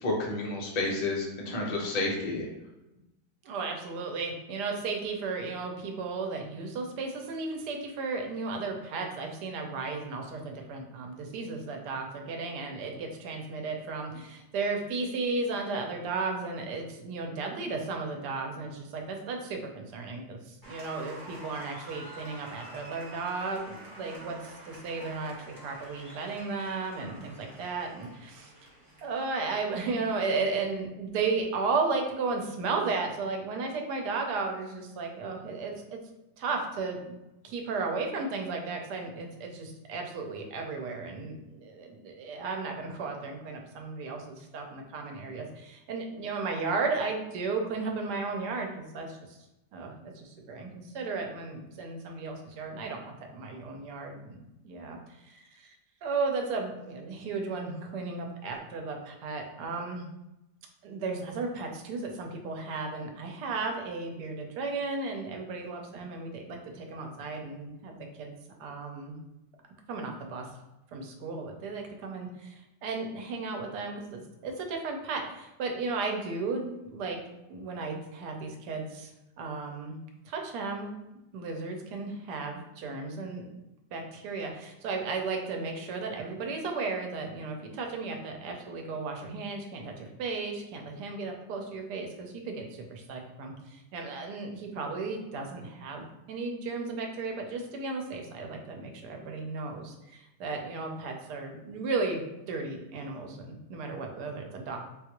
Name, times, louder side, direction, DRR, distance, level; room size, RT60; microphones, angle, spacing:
voice 1, 0.0-2.5, left 2 dB, 60° left, -2 dB, 0.4 m, -30 dB
voice 2, 3.4-28.5 29.0-35.8 36.4-37.2 37.4-49.4 49.7-54.4 54.6-55.7 56.0-60.0 60.8-69.2 69.9-70.5 70.9-77.2 77.5-79.1 79.4-80.0 80.3-81.0 81.3-83.4 83.9-104.8, right 4 dB, 75° right, 3 dB, 1.2 m, -34 dB
Applause, 20.6-30.7, right 1 dB, 35° right, 0.3 m, -48 dB
3.7 x 2.3 x 2.9 m, 0.95 s
omnidirectional pair, 1.8 m